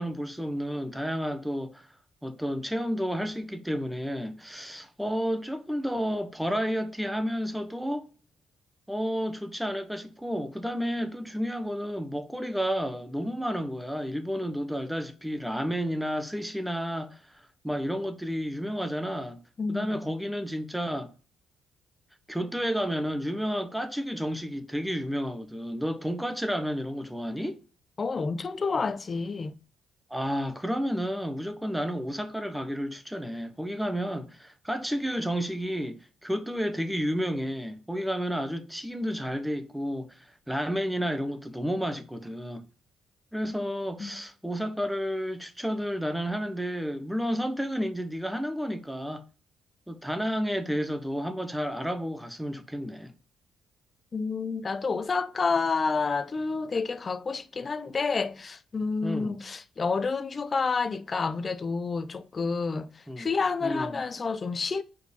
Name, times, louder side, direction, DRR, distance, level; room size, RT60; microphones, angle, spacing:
voice 1, 0.0-1.9 2.2-8.1 8.9-19.4 19.7-21.1 22.3-27.6 30.1-42.7 43.3-49.2 49.9-53.1 59.0-59.4 63.1-63.3 63.6-64.0, equal, 5° right, 1.0 m, -31 dB
voice 2, 19.6-20.1 28.0-29.5 44.0-44.2 54.1-64.8, left 4 dB, 35° left, 0.6 m, -29 dB
4.8 x 4.4 x 5.3 m
cardioid pair, 90°, 0 cm